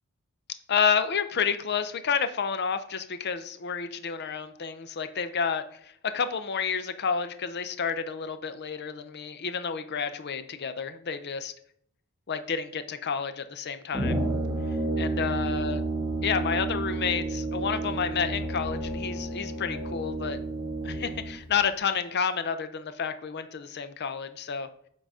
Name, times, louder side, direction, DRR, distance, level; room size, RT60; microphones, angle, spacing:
voice 1, 0.7-11.5 12.3-14.2 15.0-15.8 16.2-20.4 20.8-24.7, left 6 dB, 50° left, 11 dB, 0.6 m, -30 dB
Brass instrument, 13.9-21.4, right 2 dB, 5° right, 1.7 m, -31 dB
7.6 x 3.9 x 4.9 m, 0.67 s
head